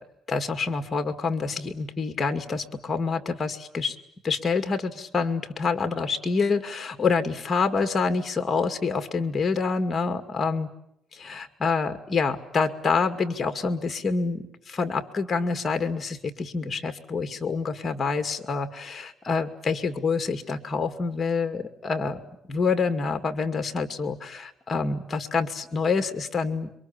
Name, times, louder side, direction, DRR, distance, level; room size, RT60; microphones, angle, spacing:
voice 1, 0.3-4.0 4.2-10.7 11.1-22.2 22.5-26.7, left 4 dB, 25° left, 8 dB, 2.3 m, -27 dB
27.5 x 23.5 x 8.8 m, 0.77 s
cardioid pair, 125°, 0 cm